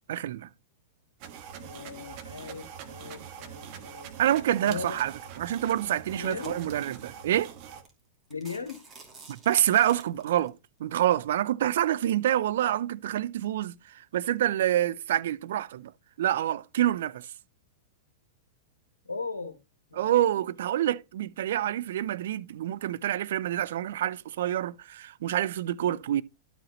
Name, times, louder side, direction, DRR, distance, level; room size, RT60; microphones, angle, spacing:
voice 1, 0.1-0.5 4.2-7.5 9.3-15.9 16.2-17.3 19.9-26.2, right 12 dB, 65° right, 0.4 m, -27 dB
sound 1, 1.2-7.8, right 8 dB, 45° right, 1.3 m, -44 dB
voice 2, 1.6-5.0 6.1-6.6 8.3-8.8 19.0-19.6 19.9-20.5 25.8-26.0, left 4 dB, 85° left, 1.0 m, -39 dB
sound 2, 6.1-6.9 7.5-7.6 7.9-8.0 8.3-10.5, right 4 dB, 25° right, 2.6 m, -51 dB
12.0 x 5.0 x 3.0 m
hypercardioid pair, 105°, 0 cm